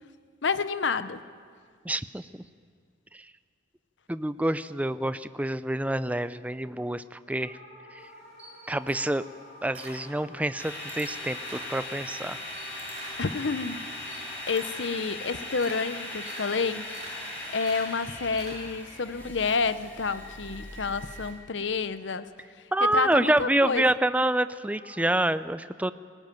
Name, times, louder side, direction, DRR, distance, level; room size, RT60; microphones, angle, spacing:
voice 1, 0.4-1.2 13.2-16.9 17.5-22.3 22.9-23.9, left 4 dB, 70° left, 13 dB, 0.8 m, -29 dB
voice 2, 1.8-2.2 3.1-3.3 4.1-7.6 7.9-8.0 8.7-9.3 9.6-12.4 22.7-25.9, right 1 dB, 10° right, 13 dB, 0.5 m, -27 dB
sound 1, 7.2-17.8 24.7-25.1, left 1 dB, 40° left, 5.5 m, -51 dB
Camera, 8.0-10.6 10.9-11.8 12.2-18.9, right 2 dB, 35° right, 7.3 m, -47 dB
sound 2, 10.6-21.3, left 1 dB, 10° left, 5.5 m, -39 dB
19.5 x 18.5 x 9.2 m, 2.1 s
head